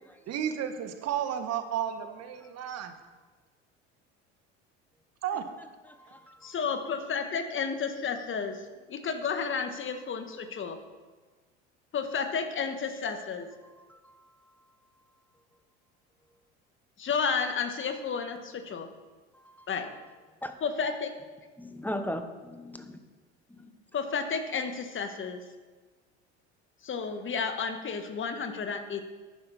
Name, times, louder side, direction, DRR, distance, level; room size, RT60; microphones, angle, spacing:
voice 1, 0.3-2.9 5.2-5.4, right 9 dB, 45° right, 8 dB, 1.5 m, -32 dB
voice 2, 5.9-6.5 13.9-14.2 19.3-19.7 20.4-20.5 21.6-23.0 23.5-23.7, equal, 5° left, 8 dB, 1.2 m, -38 dB
voice 3, 6.4-10.8 11.9-13.5 17.0-18.9 19.7-19.9 20.6-21.1 23.9-25.4 26.8-29.0, left 5 dB, 35° left, 7 dB, 1.6 m, -32 dB
11.5 x 9.9 x 4.3 m, 1.3 s
hypercardioid pair, 70°, 35 cm